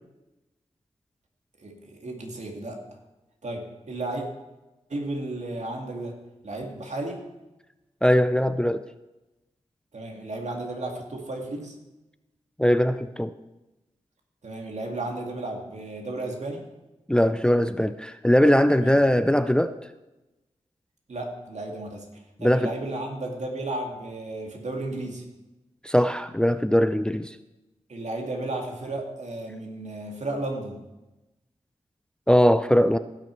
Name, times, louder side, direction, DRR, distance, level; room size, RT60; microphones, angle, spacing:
voice 1, 1.6-2.8 3.4-4.2 4.9-6.2 6.4-7.2 9.9-11.8 14.4-16.7 18.7-19.0 21.1-25.3 27.9-30.8, right 2 dB, 65° right, 2 dB, 2.1 m, -33 dB
voice 2, 8.0-8.9 12.6-13.3 17.1-19.8 22.4-22.7 25.8-27.3 32.3-33.0, equal, 5° left, 11 dB, 0.5 m, -20 dB
16.5 x 6.3 x 4.5 m, 1.0 s
cardioid pair, 45°, 13 cm